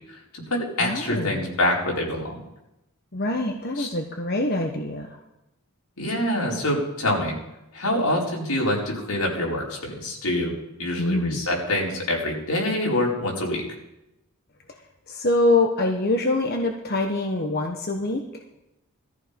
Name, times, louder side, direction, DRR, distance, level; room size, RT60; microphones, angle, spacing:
voice 1, 0.1-2.4 3.8-3.9 6.0-7.3 7.7-10.5 10.8-13.6, left 1 dB, 80° left, -3 dB, 4.8 m, -25 dB
voice 2, 0.8-1.4 3.1-5.2 11.0-11.5 15.1-18.4, left 2 dB, 45° left, 3 dB, 1.2 m, -24 dB
19.0 x 14.0 x 5.3 m, 0.90 s
head